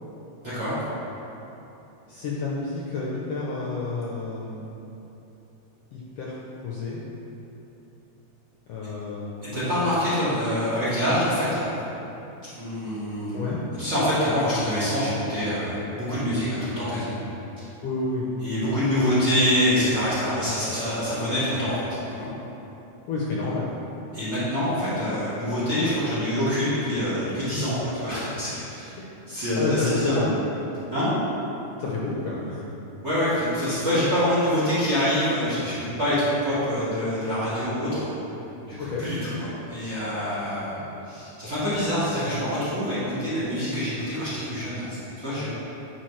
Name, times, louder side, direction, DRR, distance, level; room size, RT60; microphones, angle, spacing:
voice 1, 0.4-0.8 9.4-11.7 12.6-13.5 13.8-17.2 18.4-22.3 24.1-28.9 29.3-30.2 30.9-31.1 33.0-38.1 38.7-40.8 41.0-45.5, equal, 35° right, -12 dB, 1.3 m, -25 dB
voice 2, 2.1-4.6 5.9-6.4 6.6-7.0 8.7-9.3 13.3-13.6 17.8-18.3 23.1-23.7 29.0-29.1 29.6-30.4 31.8-32.6 38.9-39.0 40.7-40.8, left 3 dB, 75° left, -5 dB, 1.5 m, -29 dB
9.1 x 4.3 x 3.1 m, 3.0 s
omnidirectional pair, 3.4 m